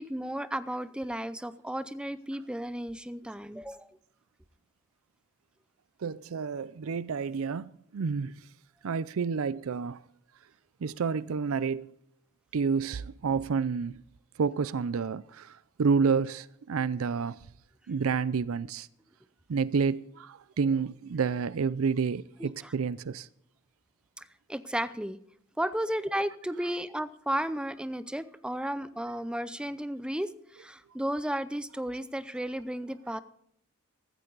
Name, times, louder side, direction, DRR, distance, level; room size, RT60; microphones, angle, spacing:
voice 1, 0.0-4.0 22.4-22.7 24.2-25.2 25.6-33.2, right 1 dB, 5° right, 0.6 m, -34 dB
voice 2, 6.0-8.3 8.8-10.0 10.8-11.9 12.5-14.0 14.4-17.5 17.9-18.9 19.5-23.3, right 5 dB, 70° right, 0.5 m, -29 dB
15.5 x 13.5 x 4.0 m
head